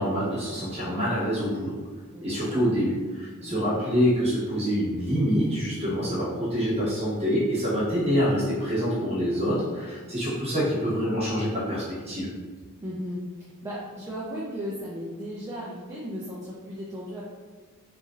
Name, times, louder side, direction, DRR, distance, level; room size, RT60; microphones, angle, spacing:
voice 1, 0.0-1.8 2.2-12.3, equal, 30° right, -9 dB, 1.2 m, -26 dB
voice 2, 2.1-2.7 3.4-3.6 12.8-17.2, equal, 15° right, -7 dB, 0.4 m, -36 dB
2.9 x 2.5 x 2.4 m, 1.4 s
head